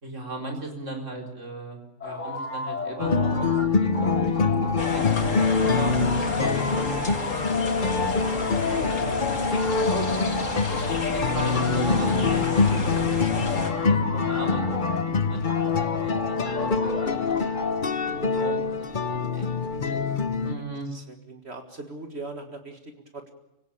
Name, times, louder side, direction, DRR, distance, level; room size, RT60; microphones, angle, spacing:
voice 1, 0.0-3.5 3.8-4.4 4.9-5.9 6.4-7.6 8.2-9.3 9.7-10.6 11.0-13.1 13.7-15.5 15.8-17.4 18.0-20.1 20.4-20.9, right 1 dB, 70° right, 2 dB, 4.5 m, -37 dB
sound 1, 2.0-3.7 3.9-12.8 13.3-15.1 15.5-17.8, left 3 dB, 70° left, 3.2 m, -33 dB
sound 2, 3.0-20.5, left 4 dB, 40° left, 1.2 m, -25 dB
sound 3, 4.8-13.7, left 3 dB, 85° left, 2.8 m, -31 dB
voice 2, 20.9-23.3, right 2 dB, 55° right, 6 dB, 2.1 m, -41 dB
25.5 x 18.0 x 8.7 m, 0.91 s
omnidirectional pair, 1.3 m